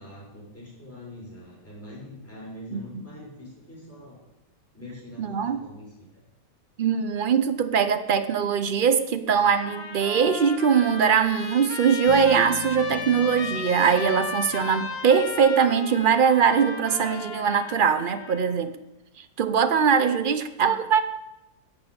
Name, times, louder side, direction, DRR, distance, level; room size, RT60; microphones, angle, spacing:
voice 1, 0.0-4.2 4.7-6.2, left 1 dB, 10° left, -5 dB, 5.6 m, -43 dB
voice 2, 5.2-5.6 6.8-18.8 19.4-21.0, right 7 dB, 70° right, 10 dB, 0.5 m, -21 dB
Trumpet, 9.4-18.6, left 4 dB, 60° left, 1.7 m, -35 dB
Bass guitar, 12.1-15.8, left 9 dB, 80° left, 1.3 m, -41 dB
11.5 x 7.1 x 8.5 m, 0.96 s
omnidirectional pair, 1.8 m